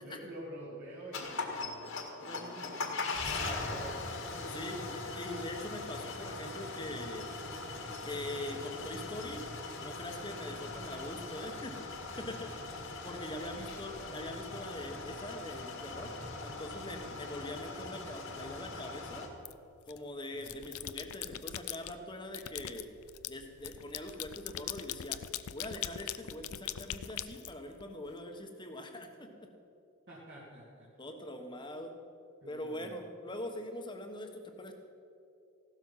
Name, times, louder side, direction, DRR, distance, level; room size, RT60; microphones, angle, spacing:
voice 1, 0.0-3.0 3.3-4.7 13.4-13.7 16.9-17.2 20.3-20.7 30.1-30.9 32.4-33.0, equal, 50° right, -6 dB, 2.3 m, -49 dB
sound 1, 1.1-19.3, left 3 dB, 65° left, 2.0 m, -40 dB
voice 2, 2.2-2.8 3.4-3.6 4.5-7.3 8.0-9.5 9.8-11.8 12.1-16.1 16.4-19.3 19.9-22.9 23.3-25.2 25.5-29.5 31.0-32.0 32.5-34.7, left 1 dB, 20° left, 5 dB, 1.2 m, -43 dB
sound 2, 19.4-20.0 20.4-21.9 22.3-28.1, left 12 dB, 90° left, 0.5 m, -41 dB
16.0 x 12.5 x 5.7 m, 2.6 s
head